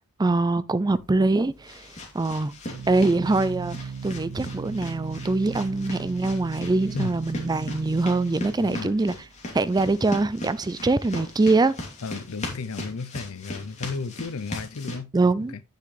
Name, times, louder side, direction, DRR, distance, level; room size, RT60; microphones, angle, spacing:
voice 1, 0.2-1.9 2.1-2.5 2.9-9.1 9.5-11.8 15.1-15.5, right 2 dB, 20° right, 0.4 m, -23 dB
Organ, 0.9-11.4, right 5 dB, 85° right, 0.7 m, -38 dB
sound 1, 1.0-15.0, left 1 dB, 30° left, 2.8 m, -39 dB
voice 2, 8.6-9.0 12.0-15.1 15.5-15.6, left 4 dB, 75° left, 0.6 m, -33 dB
9.7 x 6.6 x 3.2 m
head